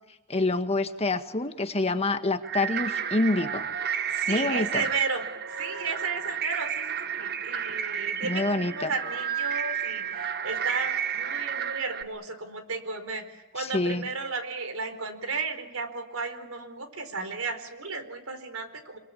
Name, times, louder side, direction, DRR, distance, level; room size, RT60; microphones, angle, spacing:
voice 1, 0.3-3.6 4.3-4.8 8.2-8.9 13.6-14.1, left 2 dB, 30° left, 8 dB, 1.6 m, -27 dB
sound 1, 2.4-12.0, right 8 dB, 50° right, 1.6 m, -31 dB
voice 2, 4.1-5.3 5.6-19.0, right 4 dB, 85° right, 9 dB, 4.4 m, -34 dB
27.0 x 22.5 x 8.6 m, 0.99 s
head